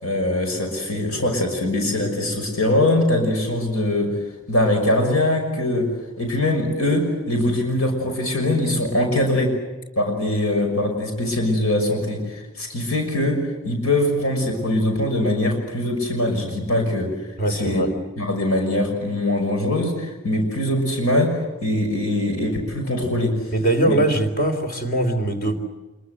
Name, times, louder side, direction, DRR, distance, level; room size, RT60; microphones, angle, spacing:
voice 1, 0.0-4.1 4.5-5.9 6.2-9.5 10.0-17.1 17.5-17.8 18.2-23.4 23.9-24.0, left 1 dB, 80° left, 3 dB, 6.0 m, -22 dB
voice 2, 17.4-17.9 23.5-25.6, right 1 dB, 45° left, 6 dB, 3.7 m, -21 dB
26.5 x 23.0 x 8.0 m, 1.2 s
head